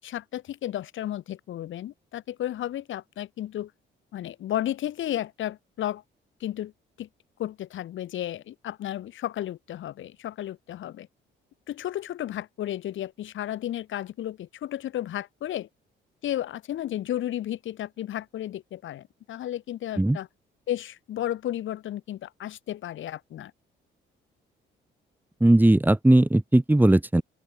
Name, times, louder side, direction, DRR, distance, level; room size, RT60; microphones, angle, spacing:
voice 1, 0.0-3.7 4.1-6.0 6.4-6.7 7.0-7.1 7.4-11.1 11.7-15.7 16.2-20.3 20.7-23.5, left 12 dB, 75° left, 7.6 m, -33 dB
voice 2, 25.4-27.2, right 1 dB, 10° right, 2.5 m, -18 dB
open air
cardioid pair, 90°, 20 cm